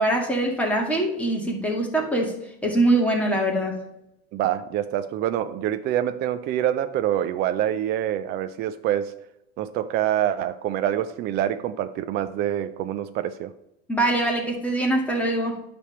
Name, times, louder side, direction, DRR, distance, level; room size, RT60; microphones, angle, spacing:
voice 1, 0.0-2.4 2.6-3.8 13.9-15.6, right 1 dB, 5° left, 1.9 m, -23 dB
voice 2, 4.3-9.1 9.6-13.5, right 11 dB, 35° right, 0.4 m, -26 dB
9.8 x 3.4 x 7.0 m
supercardioid pair, 125°, 31 cm